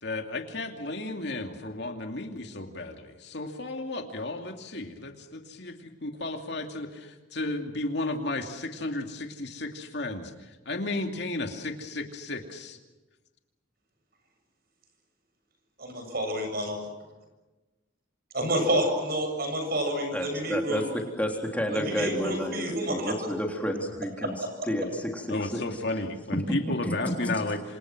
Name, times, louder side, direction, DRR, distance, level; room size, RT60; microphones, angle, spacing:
voice 1, 0.0-12.8 25.3-27.6, left 2 dB, 65° left, 4 dB, 2.6 m, -33 dB
voice 2, 15.8-16.8 18.3-20.8 21.7-23.1, right 1 dB, 55° right, 5 dB, 7.7 m, -28 dB
voice 3, 20.1-25.6 26.3-26.4 26.8-26.9, equal, 10° left, 1 dB, 3.6 m, -31 dB
28.0 x 27.0 x 6.2 m, 1.2 s
head